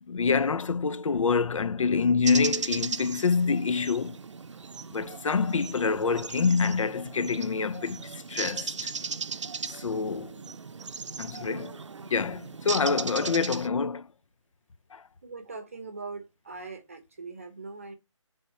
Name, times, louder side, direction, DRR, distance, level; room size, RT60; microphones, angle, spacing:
voice 1, 0.1-4.2 4.9-8.9 9.7-10.4 11.2-11.8 12.1-14.1 14.9-15.0, left 5 dB, 80° left, 0.5 m, -26 dB
sound 1, 2.2-13.7, right 5 dB, 65° right, 0.5 m, -37 dB
voice 2, 15.2-18.0, right 4 dB, 25° right, 0.8 m, -41 dB
6.6 x 3.5 x 4.2 m
hypercardioid pair, 175°, 16 cm